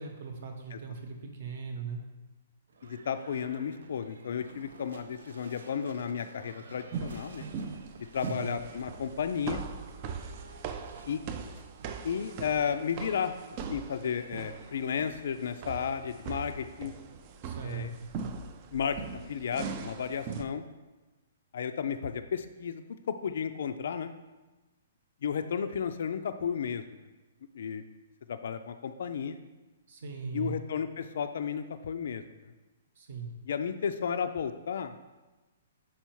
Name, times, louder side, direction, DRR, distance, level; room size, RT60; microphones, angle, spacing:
voice 1, 0.0-2.0 8.2-8.6 17.4-18.1 29.9-30.5 33.0-33.3, right 6 dB, 50° right, 4 dB, 0.9 m, -39 dB
Livestock farm animals working animals / Bell, 2.7-18.6, right 3 dB, 75° right, 0.6 m, -53 dB
voice 2, 2.8-7.4 8.1-9.6 11.1-11.2 12.0-13.3 13.7-16.9 17.6-17.9 18.7-20.6 21.5-24.1 25.2-26.8 27.6-27.8 28.3-29.4 30.3-32.5 33.4-34.9, left 7 dB, 60° left, 9 dB, 0.3 m, -33 dB
sound 1, 6.9-20.4, right 6 dB, 25° right, 0.3 m, -40 dB
5.6 x 4.5 x 4.6 m, 1.2 s
hypercardioid pair, 170°, 0 cm